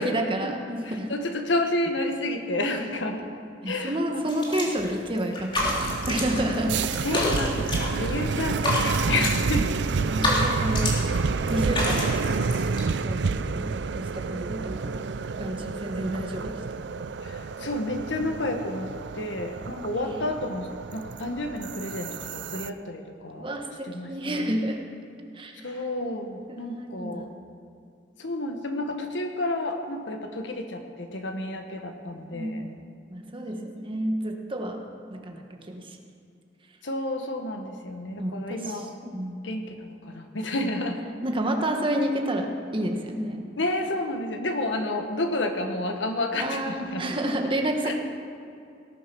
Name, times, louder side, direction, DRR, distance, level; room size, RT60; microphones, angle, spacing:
voice 1, 0.0-1.1 3.6-6.8 10.0-11.0 11.5-12.4 13.0-15.0 15.4-16.9 20.1-20.2 23.3-24.8 25.3-25.6 26.5-27.2 32.3-32.7 33.1-34.8 35.1-36.0 38.2-39.4 41.2-43.4 46.4-47.9, right 1 dB, 30° right, 3 dB, 1.5 m, -30 dB
voice 2, 0.8-3.2 3.6-4.3 7.0-9.7 17.2-23.5 23.8-24.6 25.6-27.3 28.2-32.7 33.6-33.7 36.8-38.9 39.4-41.0 43.6-47.1 47.8-47.9, left 1 dB, 85° left, 4 dB, 1.6 m, -30 dB
sound 1, 4.3-4.9 5.2-6.6 6.8-8.2 8.5-9.5 10.0-11.2 11.5-12.8, left 1 dB, 30° left, 2.9 m, -28 dB
sound 2, 5.5-22.7, right 4 dB, 70° right, 0.5 m, -29 dB
18.0 x 10.0 x 6.2 m, 2.5 s
head